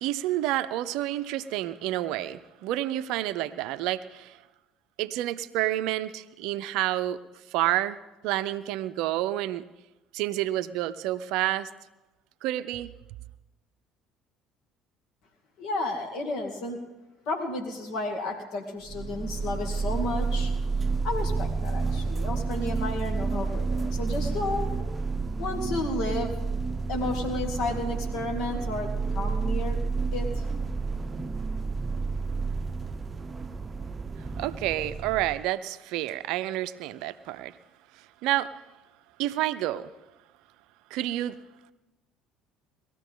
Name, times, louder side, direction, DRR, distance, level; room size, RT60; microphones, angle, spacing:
voice 1, 0.0-4.4 5.0-7.2 7.5-8.0 8.2-9.6 10.1-11.7 12.4-12.9 34.4-37.5 38.2-38.5 39.2-39.9 40.9-41.4, right 14 dB, 65° right, 14 dB, 0.5 m, -29 dB
voice 2, 15.6-16.8 17.3-20.5 20.8-24.7 25.4-26.3 26.9-29.8 30.1-30.4, left 2 dB, 60° left, 3 dB, 2.4 m, -32 dB
sound 1, 18.9-35.4, right 4 dB, 25° right, 0.7 m, -30 dB
19.5 x 13.5 x 3.7 m, 1.1 s
figure-of-eight pair, 60°, 0 cm